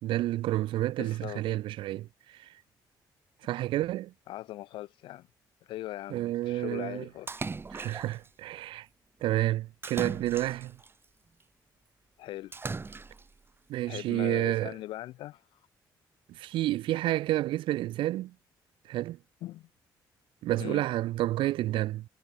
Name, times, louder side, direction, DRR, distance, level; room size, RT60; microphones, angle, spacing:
voice 1, 0.0-2.5 3.4-4.1 6.1-7.1 7.7-8.9 9.2-10.8 13.7-14.7 16.3-18.3 18.9-19.2 20.4-22.1, right 15 dB, 85° right, 3.1 m, -30 dB
voice 2, 1.0-1.4 4.3-5.3 5.7-7.3 12.2-12.5 13.9-15.4 19.4-19.7 20.6-20.8, left 15 dB, 85° left, 2.6 m, -40 dB
Splash splatter, 7.3-8.3 9.8-10.9 12.5-13.3, right 4 dB, 25° right, 2.8 m, -38 dB
cardioid pair, 90°, 8 cm